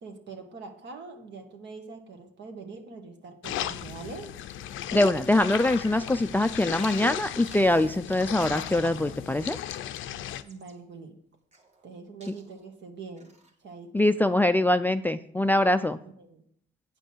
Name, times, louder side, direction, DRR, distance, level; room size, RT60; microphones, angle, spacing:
voice 1, 0.0-4.4 6.2-6.8 10.4-11.2 11.8-13.3 13.6-14.1 16.0-16.4, right 4 dB, 65° right, 5 dB, 1.6 m, -44 dB
sound 1, 3.4-10.4, left 11 dB, 80° left, 0.5 m, -36 dB
voice 2, 4.9-9.6 13.9-16.0, left 1 dB, 10° left, 11 dB, 0.3 m, -23 dB
Bird vocalization bird call bird song, 5.7-6.0 6.7-7.1 7.4-7.9 8.2-8.7 9.8-10.7 11.5-12.0 12.2-12.7 13.2-13.5, right 2 dB, 35° right, 1.6 m, -50 dB
9.1 x 5.3 x 6.3 m, 0.65 s
cardioid pair, 90°, 20 cm